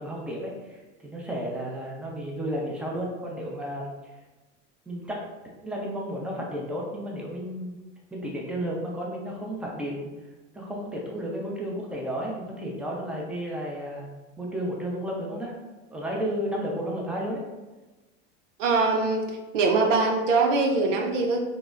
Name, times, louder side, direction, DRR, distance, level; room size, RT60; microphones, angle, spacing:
voice 1, 0.0-3.9 4.9-5.3 5.6-7.8 8.1-10.1 10.5-14.1 14.4-15.5 15.9-17.4, equal, 5° right, -2 dB, 0.5 m, -32 dB
voice 2, 18.6-19.2 19.5-21.4, right 3 dB, 85° right, 2 dB, 0.6 m, -22 dB
3.8 x 2.1 x 2.4 m, 1.2 s
hypercardioid pair, 100°, 36 cm